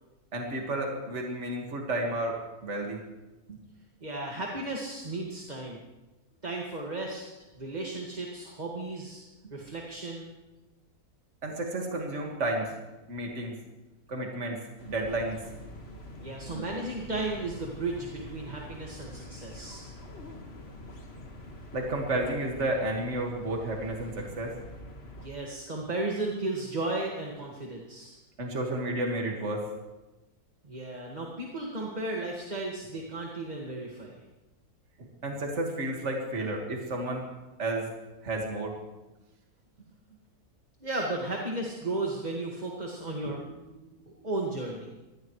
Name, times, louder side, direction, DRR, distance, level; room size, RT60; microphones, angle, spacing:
voice 1, 0.3-3.0 3.5-3.6 11.4-12.7 13.1-13.5 14.1-14.6 14.8-15.4 16.5-16.6 21.7-24.5 28.4-29.7 35.0-37.2 37.6-37.9 38.2-38.8, right 1 dB, 50° right, 0 dB, 2.3 m, -31 dB
voice 2, 4.0-5.8 6.4-7.3 7.6-9.2 9.5-10.3 16.2-19.9 25.2-28.2 30.6-34.2 40.8-44.9, right 2 dB, 25° right, -1 dB, 2.0 m, -34 dB
sound 1, 14.8-25.3, left 1 dB, 40° left, 1.9 m, -45 dB
24.0 x 18.0 x 3.2 m, 1.1 s
omnidirectional pair, 1.6 m